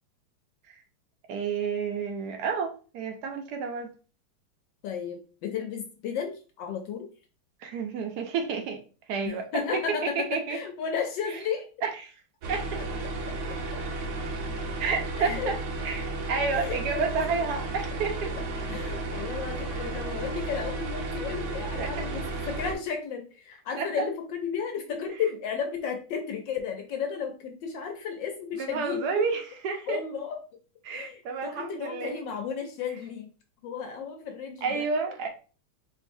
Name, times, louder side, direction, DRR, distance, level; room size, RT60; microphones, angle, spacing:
voice 1, 1.3-3.9 7.6-8.8 9.1-9.5 9.7-9.8 10.2-10.6 11.8-12.1 12.5-12.8 14.8-15.5 15.8-18.3 21.8-21.9 23.8-24.0 28.6-30.0 30.8-32.2 34.6-35.3, right 5 dB, 85° right, 0.8 m, -30 dB
voice 2, 4.8-7.1 9.2-11.6 15.2-15.5 16.5-17.0 18.7-29.3 29.9-30.4 30.9-33.3 33.6-34.9, left 6 dB, 70° left, 1.1 m, -33 dB
sound 1, 12.4-22.7, right 2 dB, 65° right, 1.2 m, -33 dB
4.7 x 3.0 x 2.6 m
omnidirectional pair, 2.4 m